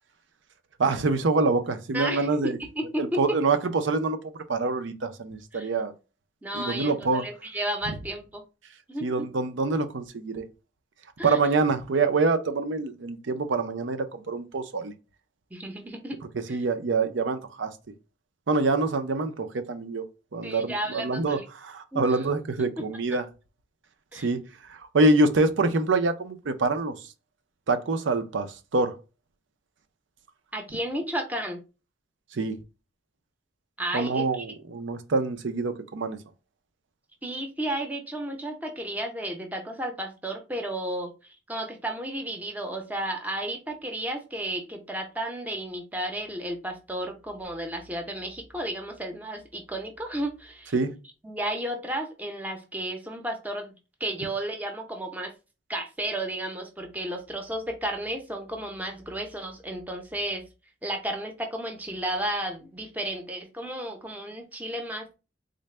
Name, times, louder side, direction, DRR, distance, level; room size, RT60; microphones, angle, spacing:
voice 1, 0.8-2.6 3.0-4.2 4.5-5.9 6.5-7.2 9.0-10.4 11.2-14.9 16.5-17.7 18.5-20.0 20.3-23.2 24.1-24.4 24.7-26.9 27.7-28.9 32.3-32.6 33.9-36.2 50.7-50.9, right 3 dB, 85° right, 0.6 m, -25 dB
voice 2, 1.9-3.4 5.5-5.7 6.4-8.4 8.9-9.3 11.2-11.4 15.5-16.2 16.5-16.6 20.4-21.4 21.9-22.3 24.1-24.3 30.5-31.6 33.8-34.4 37.2-50.7 51.2-53.7 54.0-55.3 55.7-60.5 60.8-65.1, right 1 dB, 10° right, 0.6 m, -33 dB
3.8 x 2.2 x 3.2 m
head